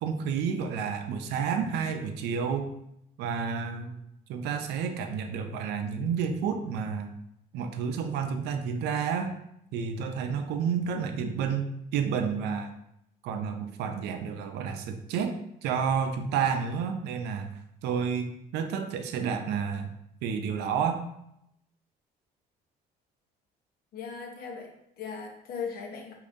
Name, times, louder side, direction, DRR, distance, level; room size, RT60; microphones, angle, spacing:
voice 1, 0.0-2.7 3.2-4.0 4.3-7.2 7.5-9.3 9.7-12.7 13.2-19.9 20.2-21.0, right 6 dB, 80° right, 7 dB, 0.5 m, -30 dB
voice 2, 23.9-26.1, left 6 dB, 60° left, 1 dB, 0.8 m, -38 dB
4.8 x 2.7 x 2.6 m, 0.79 s
cardioid pair, 110°, 17 cm